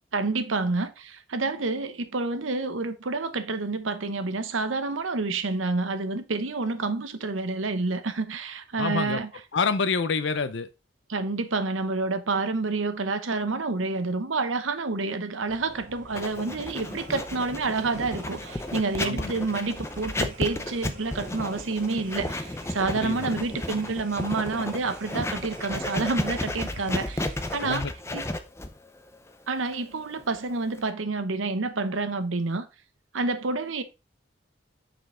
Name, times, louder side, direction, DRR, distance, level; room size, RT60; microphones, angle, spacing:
voice 1, 0.1-9.3 11.1-27.9 28.1-28.2 29.5-32.7 33.1-33.8, right 3 dB, 85° right, 0.9 m, -28 dB
voice 2, 8.8-9.2 9.5-10.7 19.0-19.5 22.9-23.4 27.6-27.9, left 5 dB, 70° left, 0.6 m, -28 dB
sound 1, 15.5-27.7, right 1 dB, 45° right, 1.7 m, -47 dB
Writing, 16.1-30.9, left 1 dB, 15° left, 0.5 m, -33 dB
6.3 x 5.2 x 3.7 m
head